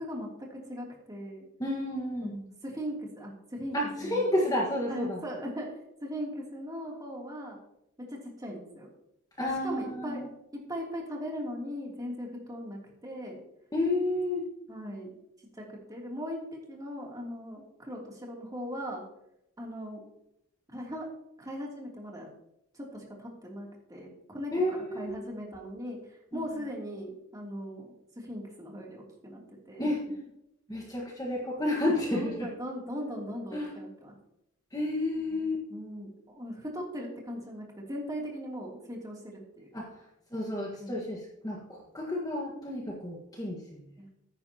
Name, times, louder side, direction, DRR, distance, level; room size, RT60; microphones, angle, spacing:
voice 1, 0.0-1.5 2.2-4.3 4.9-7.6 8.0-8.9 9.4-10.2 10.5-13.4 14.7-15.1 15.6-19.0 19.6-20.0 20.7-21.0 21.4-22.3 22.7-27.9 28.1-29.9 32.1-34.1 35.4-39.7 40.8-40.9 44.0-44.1, equal, 15° right, -2 dB, 2.9 m, -39 dB
voice 2, 1.6-2.3 3.7-5.2 9.4-10.3 13.7-14.4 24.5-25.1 26.3-26.5 29.8-30.0 30.7-32.5 33.5-33.7 34.7-35.6 39.7-39.9 40.3-43.8, left 1 dB, 15° left, -2 dB, 1.5 m, -31 dB
15.0 x 10.0 x 2.9 m, 0.82 s
head